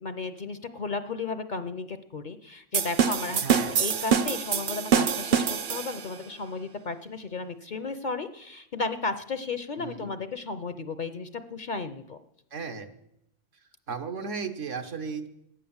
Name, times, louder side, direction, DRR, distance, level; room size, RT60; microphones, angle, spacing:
voice 1, 0.0-5.4 5.7-12.2, left 4 dB, 50° left, 10 dB, 0.6 m, -34 dB
sound 1, 2.7-6.2, right 7 dB, 55° right, 0.7 m, -25 dB
voice 2, 3.4-3.7 9.8-10.1 12.5-12.9 13.9-15.3, right 5 dB, 80° right, 6 dB, 1.5 m, -35 dB
13.5 x 10.0 x 7.1 m, 0.81 s
omnidirectional pair, 1.3 m